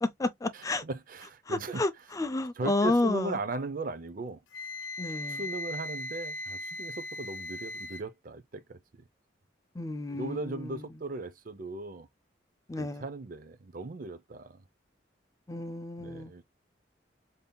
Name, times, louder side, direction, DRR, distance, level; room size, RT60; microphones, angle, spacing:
voice 1, 0.0-0.8 1.5-1.9 2.2-3.4 5.0-5.4 9.8-10.8 12.7-13.0 15.5-16.3, left 2 dB, 15° left, 0.4 m, -31 dB
voice 2, 0.5-1.8 2.6-4.4 5.3-8.8 10.1-12.1 12.8-14.6 16.0-16.4, right 2 dB, 45° right, 0.5 m, -37 dB
Wind instrument woodwind instrument, 4.5-8.0, left 1 dB, 75° left, 0.7 m, -38 dB
5.3 x 2.7 x 2.2 m
head